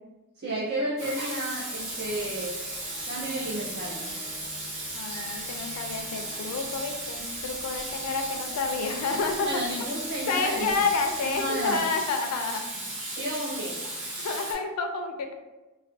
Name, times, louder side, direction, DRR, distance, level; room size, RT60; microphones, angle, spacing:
voice 1, 0.4-2.6 3.1-4.1 9.4-10.7 11.2-11.8 13.2-13.8, right 1 dB, 45° right, -6 dB, 0.4 m, -32 dB
Water tap faucet / Sink (filling or washing), 1.0-14.5, right 1 dB, 85° right, 1.1 m, -36 dB
sound 1, 1.7-11.8, left 1 dB, 15° left, 0.9 m, -49 dB
voice 2, 4.9-9.6 10.3-12.6 14.2-15.3, left 4 dB, 90° left, 5 dB, 0.4 m, -29 dB
2.4 x 2.2 x 2.5 m, 1.1 s
head